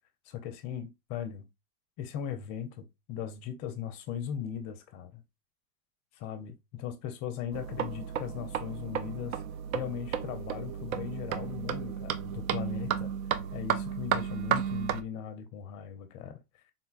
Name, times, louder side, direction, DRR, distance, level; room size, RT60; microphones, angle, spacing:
voice 1, 0.3-1.5 2.0-5.2 6.1-9.4 9.7-13.1 13.5-16.4, left 9 dB, 35° left, 0.5 m, -38 dB
sound 1, 7.5-15.0, right 9 dB, 60° right, 0.5 m, -33 dB
3.8 x 2.2 x 2.4 m
hypercardioid pair, 110°, 48 cm